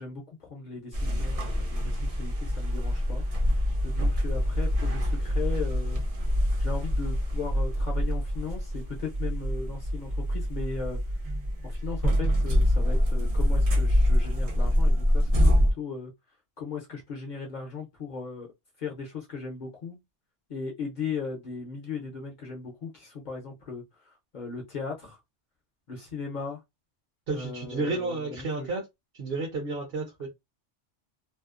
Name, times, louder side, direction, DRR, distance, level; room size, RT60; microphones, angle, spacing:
voice 1, 0.0-3.2 3.8-6.0 6.6-11.0 11.6-16.1 16.6-18.5 18.8-20.0 20.5-23.8 24.3-25.2 25.9-26.6 27.3-28.7, left 5 dB, 50° left, 0.7 m, -37 dB
sound 1, 0.9-15.7, equal, 40° right, 0.5 m, -25 dB
voice 2, 27.3-28.8 29.2-30.3, right 3 dB, 60° right, 0.9 m, -31 dB
2.7 x 2.0 x 2.3 m
omnidirectional pair, 1.2 m